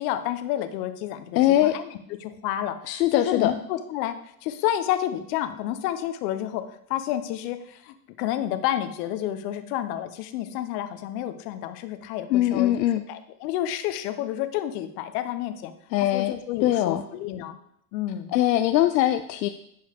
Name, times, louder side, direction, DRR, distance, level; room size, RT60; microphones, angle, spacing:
voice 1, 0.0-1.9 2.2-4.1 4.4-12.7 13.1-15.7 16.0-17.6 17.9-18.4, left 12 dB, 65° left, 10 dB, 1.0 m, -30 dB
voice 2, 1.4-1.7 2.9-3.5 12.3-13.0 15.9-16.3 16.6-17.0 18.3-19.5, left 13 dB, 90° left, 9 dB, 0.5 m, -21 dB
11.0 x 4.7 x 3.5 m, 0.73 s
hypercardioid pair, 90°, 49 cm